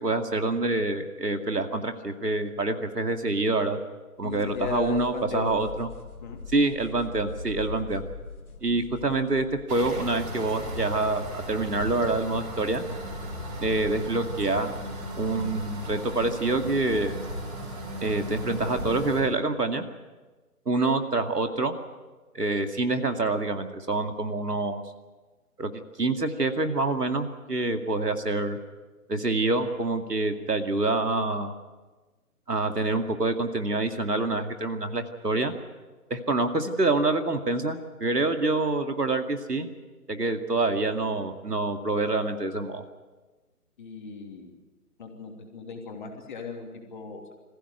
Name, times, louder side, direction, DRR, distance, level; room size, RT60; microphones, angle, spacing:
voice 1, 0.0-3.8 4.2-5.9 6.5-8.1 8.6-12.8 13.6-14.8 15.2-17.1 18.0-19.8 20.7-21.7 22.3-24.8 25.6-25.7 26.0-28.6 29.1-31.5 32.5-35.5 36.1-39.7 40.1-42.8, right 2 dB, 85° right, 6 dB, 2.4 m, -26 dB
voice 2, 4.2-5.5 6.2-6.4 43.8-44.5 45.0-47.3, left 4 dB, 30° left, 2 dB, 3.0 m, -37 dB
sound 1, 4.3-10.3, left 3 dB, 70° left, 2.7 m, -41 dB
sound 2, 9.7-19.2, equal, 20° right, 4.8 m, -36 dB
22.5 x 15.5 x 9.5 m, 1.3 s
figure-of-eight pair, 150°, 46 cm